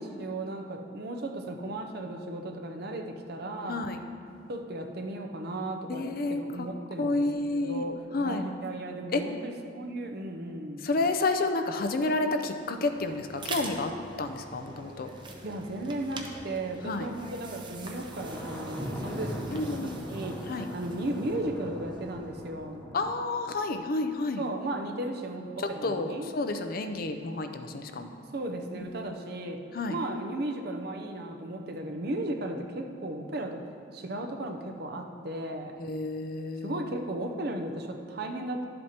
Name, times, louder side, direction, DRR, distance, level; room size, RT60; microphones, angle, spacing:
voice 1, 0.0-3.9 4.5-10.9 15.2-20.4 20.7-22.9 24.4-26.3 28.3-29.6 29.9-33.6 33.9-35.8 36.6-38.7, right 1 dB, 60° right, 4 dB, 0.7 m, -35 dB
voice 2, 3.7-4.0 5.9-6.7 7.0-7.8 8.1-8.4 9.1-9.2 10.8-13.9 14.2-15.1 16.8-17.1 19.5-20.0 20.5-20.7 22.9-24.4 25.8-28.1 29.1-29.2 29.7-30.0 35.8-36.8, left 2 dB, 55° left, 7 dB, 0.5 m, -30 dB
sound 1, 12.6-22.5, right 3 dB, 25° right, 0.7 m, -44 dB
Thunder, 17.8-23.1, equal, 10° left, 0.9 m, -39 dB
11.5 x 7.7 x 2.9 m, 2.4 s
head